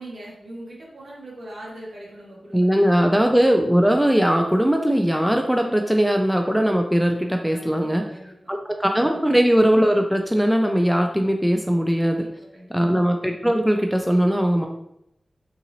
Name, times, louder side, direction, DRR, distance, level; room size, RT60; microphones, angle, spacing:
voice 1, 0.0-3.0 7.5-8.5 8.9-9.2 12.0-12.8, right 1 dB, 65° right, -4 dB, 1.3 m, -41 dB
voice 2, 2.5-8.0 8.5-12.2 12.7-14.7, equal, 5° right, 3 dB, 0.3 m, -20 dB
3.7 x 2.9 x 2.7 m, 0.79 s
wide cardioid pair, 70°, 0 cm